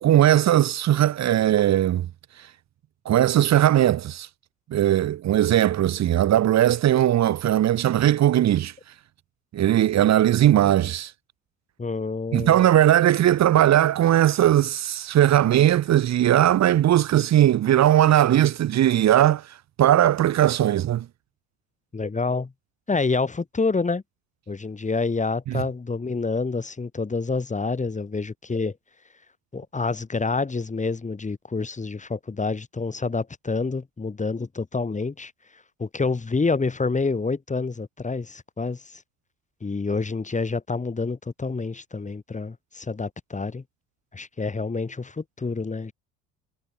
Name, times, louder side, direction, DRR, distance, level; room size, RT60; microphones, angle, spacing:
voice 1, 0.0-2.1 3.0-4.3 4.7-8.7 9.5-11.1 12.3-21.1 25.5-25.6, right 12 dB, 45° right, 1.6 m, -19 dB
voice 2, 11.8-12.6 21.9-22.5 22.9-24.0 24.5-28.8 29.5-35.3 35.8-39.0 39.6-43.6 44.1-45.9, left 4 dB, 20° left, 3.5 m, -27 dB
hypercardioid pair, 70°, 37 cm